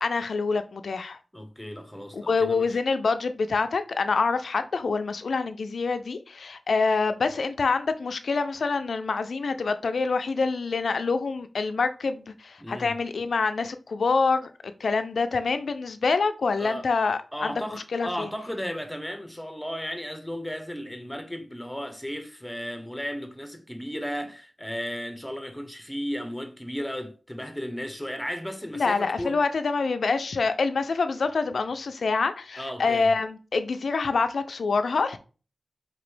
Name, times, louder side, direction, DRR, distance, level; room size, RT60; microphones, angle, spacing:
voice 1, 0.0-1.2 2.1-14.5 14.8-17.5 17.9-18.3 28.8-35.2, left 4 dB, 80° left, 0.4 m, -26 dB
voice 2, 1.3-2.8 12.6-12.9 16.6-16.9 17.3-29.4 32.6-33.1, equal, 5° left, 0.9 m, -35 dB
4.4 x 3.0 x 3.1 m
cardioid pair, 40°, 0 cm